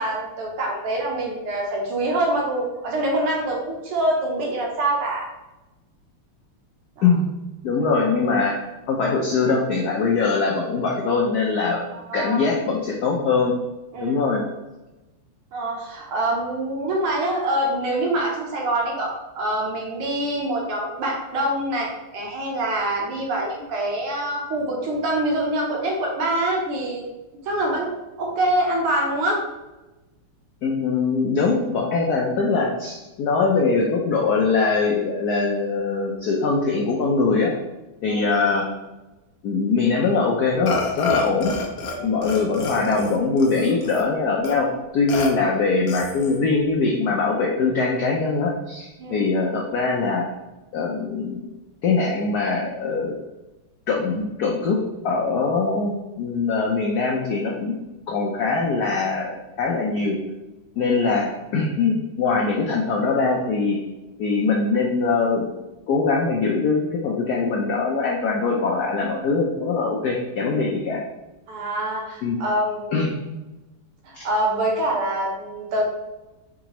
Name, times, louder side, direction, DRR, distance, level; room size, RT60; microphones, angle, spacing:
voice 1, 0.0-5.3 7.0-7.1 7.8-7.9 11.9-12.5 13.9-14.4 15.5-27.1 27.4-27.9 28.2-29.4 38.1-38.4 42.0-42.1 49.0-49.3 60.8-61.0 71.5-73.1 74.1-75.9, right 1 dB, 85° right, -2 dB, 2.0 m, -25 dB
voice 2, 7.6-11.9 12.1-13.5 14.0-14.4 30.6-37.5 38.0-38.6 39.4-41.5 42.0-50.2 50.7-51.5 51.8-53.1 53.9-54.8 55.0-57.8 58.1-60.2 60.8-63.8 64.2-65.5 65.9-71.0 72.2-72.4 72.9-73.1 74.1-74.2, left 4 dB, 85° left, -1 dB, 0.8 m, -22 dB
Burping eructation, 40.7-42.0 42.2-44.0 44.4-44.5 45.1-45.3 45.9-46.4, left 3 dB, 60° left, 1.0 m, -28 dB
4.9 x 3.6 x 3.0 m, 1.1 s
omnidirectional pair, 2.4 m